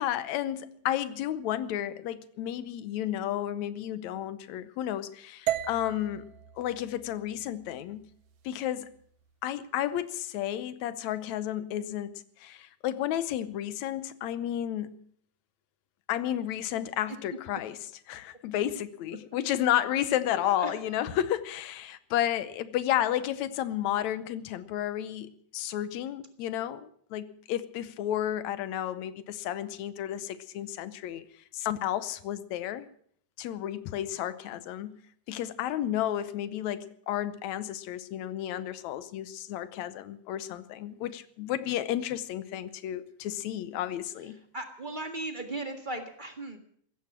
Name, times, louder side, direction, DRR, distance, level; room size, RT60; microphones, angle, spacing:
voice 1, 0.0-8.1 8.5-8.9 9.4-12.1 12.4-14.9 16.1-31.3 31.5-32.9 33.4-35.0 35.3-44.4, left 11 dB, 75° left, 15 dB, 2.1 m, -32 dB
sound 1, 5.5-9.6, right 13 dB, 70° right, 1.8 m, -38 dB
voice 2, 20.3-20.7 44.5-46.6, right 2 dB, 25° right, 6 dB, 1.1 m, -37 dB
16.0 x 13.5 x 6.0 m, 0.62 s
omnidirectional pair, 3.3 m